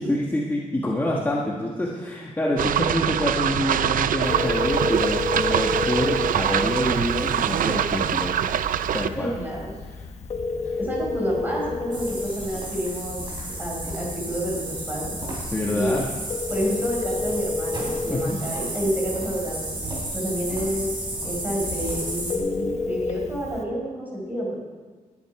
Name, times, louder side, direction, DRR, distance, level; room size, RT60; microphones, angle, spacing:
voice 1, 0.0-8.3 8.9-9.3 10.0-10.1 15.5-16.1 18.1-18.4, left 1 dB, 15° left, -3 dB, 1.4 m, -26 dB
sound 1, 2.6-9.1, right 10 dB, 85° right, 0.5 m, -24 dB
Telephone, 4.2-23.6, left 3 dB, 55° left, 1.2 m, -32 dB
voice 2, 9.1-9.7 10.8-13.2 13.6-15.2 15.7-16.0 16.5-19.7 20.1-24.6, equal, 15° right, -4 dB, 5.0 m, -29 dB
sound 2, 11.9-22.4, right 1 dB, 35° right, 4.6 m, -33 dB
20.5 x 10.5 x 4.7 m, 1.4 s
wide cardioid pair, 175°, 14 cm